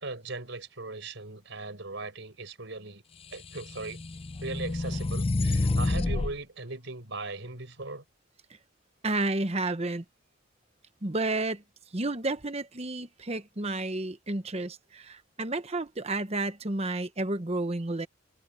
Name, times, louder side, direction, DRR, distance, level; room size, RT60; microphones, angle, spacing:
voice 1, 0.0-3.0 3.3-4.0 4.4-8.0, right 3 dB, 60° right, 5.4 m, -39 dB
sound 1, 3.4-6.3, left 2 dB, 25° left, 0.5 m, -28 dB
voice 2, 9.0-10.0 11.0-11.6 11.9-18.1, right 2 dB, 30° right, 1.0 m, -31 dB
head